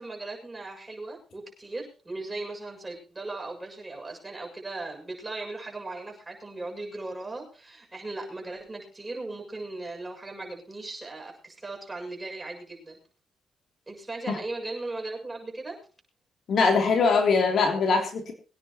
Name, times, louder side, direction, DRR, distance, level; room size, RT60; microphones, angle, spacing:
voice 1, 0.0-13.0 13.9-15.8, right 2 dB, 15° right, 1 dB, 7.1 m, -38 dB
voice 2, 16.5-18.3, left 4 dB, 60° left, 3 dB, 3.3 m, -22 dB
24.0 x 10.0 x 3.1 m, 0.38 s
cardioid pair, 90°, 0 cm